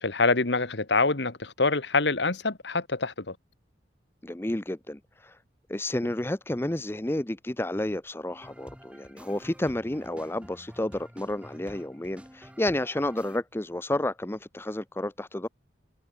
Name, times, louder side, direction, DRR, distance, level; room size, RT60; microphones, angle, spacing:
voice 1, 0.0-3.3, left 3 dB, 70° left, 1.8 m, -25 dB
voice 2, 4.2-5.3 5.7-15.5, left 1 dB, 15° left, 0.6 m, -31 dB
sound 1, 8.3-13.4, equal, 5° right, 7.8 m, -49 dB
head